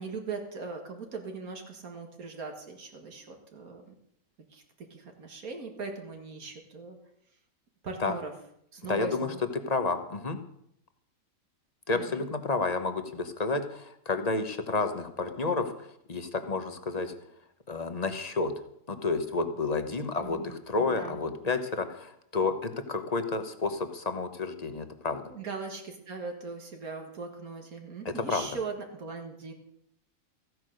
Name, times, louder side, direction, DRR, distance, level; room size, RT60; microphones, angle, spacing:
voice 1, 0.0-3.9 4.5-7.0 7.8-8.3 8.7-9.4 11.9-12.3 20.2-20.5 20.8-21.2 21.4-21.5 25.3-29.5, right 4 dB, 80° right, 3 dB, 2.1 m, -40 dB
voice 2, 8.9-10.4 11.9-17.1 17.7-18.5 18.9-25.3 28.0-28.5, left 3 dB, 30° left, 8 dB, 1.1 m, -30 dB
14.5 x 9.4 x 6.5 m, 0.73 s
omnidirectional pair, 1.5 m